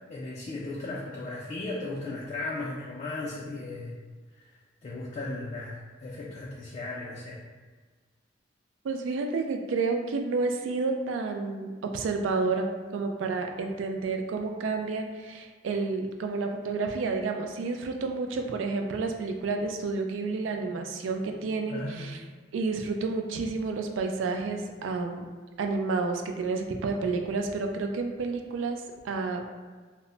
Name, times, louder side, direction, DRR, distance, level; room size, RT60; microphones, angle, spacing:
voice 1, 0.1-4.0 4.4-7.4 21.7-22.2, left 2 dB, 35° left, -4 dB, 0.3 m, -36 dB
voice 2, 8.8-22.2 22.5-25.2 25.6-29.4, right 4 dB, 85° right, 4 dB, 0.3 m, -30 dB
2.1 x 2.0 x 3.7 m, 1.4 s
head